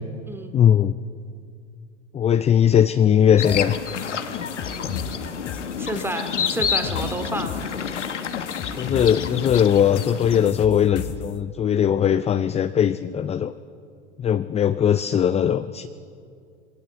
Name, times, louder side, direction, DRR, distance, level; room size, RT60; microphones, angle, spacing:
voice 1, 0.5-0.9 2.1-3.8 4.3-4.5 8.8-13.5 14.2-15.9, left 9 dB, 20° left, 12 dB, 0.5 m, -19 dB
sound 1, 3.4-10.5, left 7 dB, 85° left, 1.2 m, -29 dB
sound 2, 3.5-11.3, left 7 dB, 45° left, 1.6 m, -34 dB
voice 2, 5.8-7.5, right 1 dB, 5° right, 6 dB, 2.5 m, -30 dB
21.0 x 17.5 x 7.6 m, 2.4 s
hypercardioid pair, 85°, 35 cm